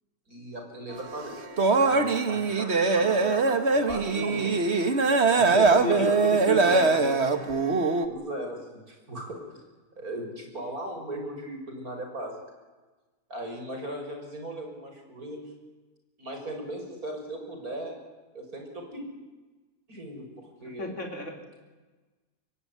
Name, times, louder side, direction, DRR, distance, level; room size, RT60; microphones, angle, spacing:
voice 1, 0.3-4.6 5.3-6.2 6.6-6.9 8.0-9.6 10.0-12.4 13.3-15.4 16.2-18.0 18.3-19.0 19.9-20.9, right 1 dB, 65° right, 3 dB, 6.7 m, -38 dB
sound 1, 1.0-8.1, right 4 dB, 45° right, 1.9 m, -22 dB
voice 2, 4.1-4.5 5.5-7.2 20.6-21.6, left 3 dB, 45° left, 3 dB, 4.2 m, -34 dB
25.5 x 22.5 x 9.6 m, 1.2 s
omnidirectional pair, 1.7 m